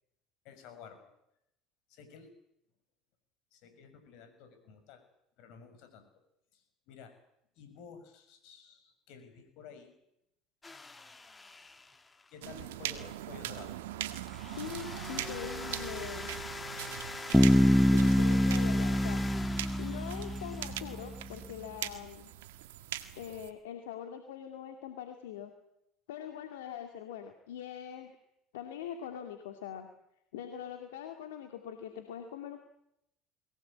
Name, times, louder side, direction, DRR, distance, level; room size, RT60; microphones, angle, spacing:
voice 1, 0.4-1.1 1.9-2.3 3.5-5.0 5.4-6.1 6.5-7.1 7.6-9.9 12.3-13.8, left 6 dB, 65° left, 8 dB, 6.5 m, -52 dB
sound 1, 10.6-12.5 14.3-21.4, left 3 dB, 20° left, 2.1 m, -43 dB
sound 2, 12.4-23.5, right 13 dB, 85° right, 1.7 m, -42 dB
voice 2, 14.6-16.3 17.4-19.2 19.6-22.3 23.1-25.5 26.1-28.2 28.5-29.9 30.3-32.6, left 9 dB, 85° left, 6 dB, 2.3 m, -43 dB
Bass guitar, 17.3-21.1, equal, ahead, 0.9 m, -25 dB
22.0 x 18.0 x 8.7 m, 0.79 s
hypercardioid pair, 85°, 0 cm